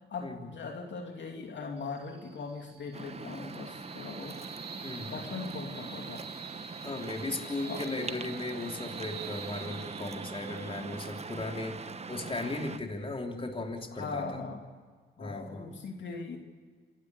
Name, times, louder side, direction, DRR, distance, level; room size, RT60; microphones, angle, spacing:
voice 1, 0.1-4.4 5.1-6.2 7.7-7.8 13.9-14.6 15.2-16.4, left 4 dB, 65° left, 2 dB, 2.8 m, -39 dB
sound 1, 1.8-14.4, right 6 dB, 55° right, 2.6 m, -48 dB
Waves surf, 2.9-12.8, right 4 dB, 35° right, 1.1 m, -42 dB
voice 2, 4.8-5.2 6.8-14.4 15.2-15.7, left 2 dB, 25° left, 2 dB, 3.4 m, -37 dB
27.5 x 11.5 x 8.3 m, 1.5 s
supercardioid pair, 60°, 20 cm